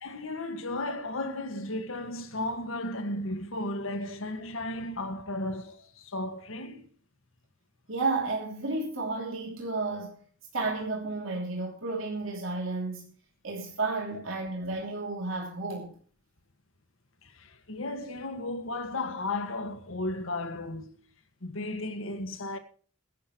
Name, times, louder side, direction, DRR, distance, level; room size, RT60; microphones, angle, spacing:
voice 1, 0.0-6.9 17.2-21.1 21.4-22.6, left 2 dB, 75° left, 1.8 m, -34 dB
voice 2, 7.9-10.2 10.5-13.1 13.4-15.9, right 3 dB, 75° right, 2.9 m, -32 dB
21.0 x 11.0 x 3.1 m
head